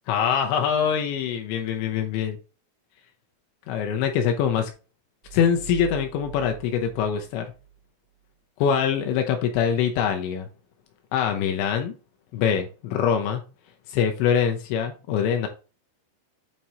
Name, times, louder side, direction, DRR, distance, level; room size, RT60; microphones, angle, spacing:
voice 1, 0.1-2.4 3.7-4.7 5.3-7.5 8.6-10.5 11.1-11.9 12.3-13.4 13.9-15.5, left 8 dB, 80° left, 4 dB, 2.8 m, -24 dB
sound 1, 5.2-7.9, right 11 dB, 85° right, 4.0 m, -42 dB
8.5 x 4.5 x 2.8 m, 0.35 s
omnidirectional pair, 5.5 m